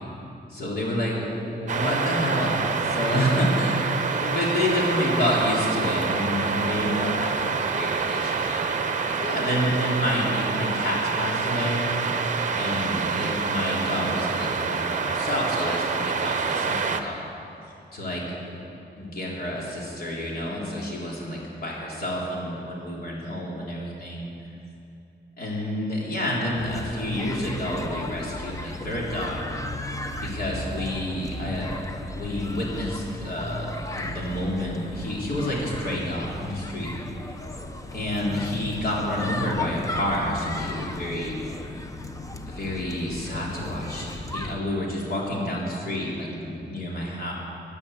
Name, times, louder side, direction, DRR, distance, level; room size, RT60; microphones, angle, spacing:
voice 1, 0.5-8.6 9.1-11.9 12.6-17.3 17.9-18.2 18.5-18.6 19.0-24.2 25.4-29.4 30.2-31.8 32.1-36.9 37.9-41.3 42.5-47.3, left 1 dB, 55° left, -4 dB, 3.9 m, -29 dB
sound 1, 1.7-17.0, right 5 dB, 45° right, 0.9 m, -27 dB
sound 2, 26.6-44.6, left 2 dB, 20° left, 0.8 m, -35 dB
17.0 x 9.8 x 8.2 m, 2.7 s
wide cardioid pair, 170°, 18 cm